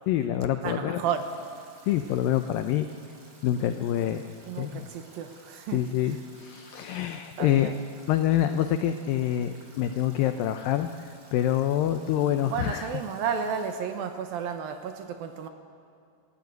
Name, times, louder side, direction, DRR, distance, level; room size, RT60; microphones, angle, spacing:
voice 1, 0.1-1.0 1.9-2.9 3.4-4.2 4.6-4.9 5.7-7.7 8.1-12.9, left 11 dB, 85° left, 8 dB, 2.0 m, -26 dB
voice 2, 0.6-1.3 4.4-5.8 7.4-7.8 12.5-15.5, right 7 dB, 70° right, 7 dB, 2.4 m, -32 dB
Stream / Drip / Trickle dribble, 1.1-13.8, right 2 dB, 25° right, 3.2 m, -54 dB
25.0 x 13.0 x 9.4 m, 2.3 s
omnidirectional pair, 5.0 m